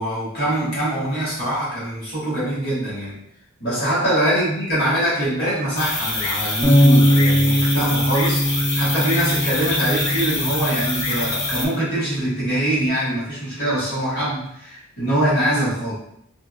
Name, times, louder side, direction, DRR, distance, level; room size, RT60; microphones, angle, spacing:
voice 1, 0.0-3.2 3.6-15.9, right 1 dB, 50° left, -8 dB, 1.4 m, -23 dB
sound 1, 5.8-11.7, left 2 dB, 70° left, 0.7 m, -25 dB
sound 2, 6.6-12.9, equal, 15° left, 0.4 m, -21 dB
2.7 x 2.5 x 2.4 m, 0.73 s
head